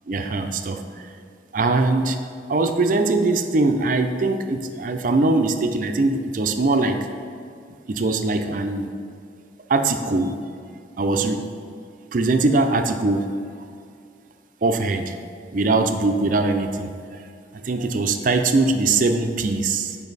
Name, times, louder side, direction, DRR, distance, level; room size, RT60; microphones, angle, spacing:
voice 1, 0.1-0.8 1.5-2.2 2.5-7.0 7.9-8.9 9.7-10.3 11.0-11.5 12.1-13.3 14.6-15.1 15.5-17.3 17.5-20.0, right 3 dB, 45° right, 6 dB, 0.4 m, -21 dB
7.0 x 5.3 x 4.0 m, 2.3 s
head